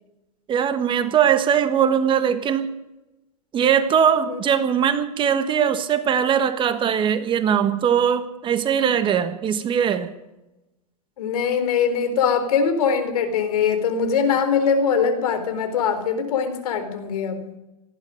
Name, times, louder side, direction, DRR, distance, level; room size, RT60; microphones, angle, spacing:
voice 1, 0.5-2.7 3.5-10.1, right 8 dB, 25° right, 10 dB, 1.4 m, -20 dB
voice 2, 11.2-17.5, left 6 dB, 70° left, 8 dB, 3.9 m, -22 dB
19.0 x 15.0 x 5.1 m, 0.99 s
hypercardioid pair, 120°, 20 cm